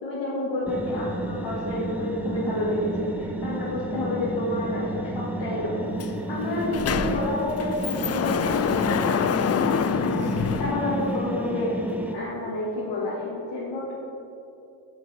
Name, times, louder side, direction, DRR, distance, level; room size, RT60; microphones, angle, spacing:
voice 1, 0.0-11.8 12.1-13.9, left 1 dB, 70° left, -8 dB, 1.7 m, -30 dB
sound 1, 0.7-12.1, right 1 dB, 5° right, 0.8 m, -31 dB
Sliding door, 6.0-6.1 6.4-11.4, left 8 dB, 35° left, 0.4 m, -27 dB
7.9 x 7.0 x 4.3 m, 2.7 s
supercardioid pair, 45°, 47 cm